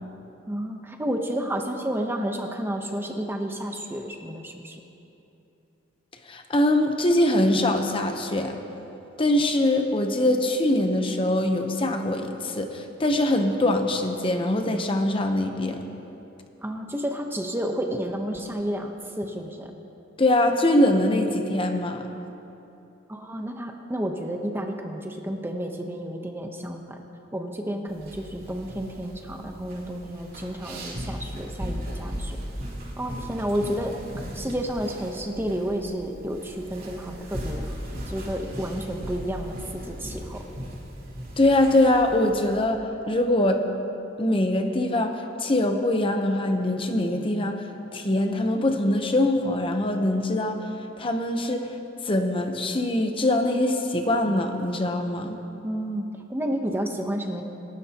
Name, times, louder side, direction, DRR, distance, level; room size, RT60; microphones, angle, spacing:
voice 1, 0.5-4.8 16.6-19.7 23.1-27.0 27.3-32.4 33.0-33.9 34.3-37.7 38.1-40.4 55.6-57.4, equal, 10° right, 3 dB, 0.9 m, -31 dB
voice 2, 6.3-8.6 9.2-15.8 20.2-22.1 41.4-43.6 44.2-47.6 47.9-50.7 51.0-51.7 52.0-55.4, left 1 dB, 30° left, 5 dB, 0.8 m, -23 dB
sound 1, 27.9-42.6, equal, 50° right, 3.0 m, -37 dB
27.5 x 12.5 x 2.9 m, 2.9 s
head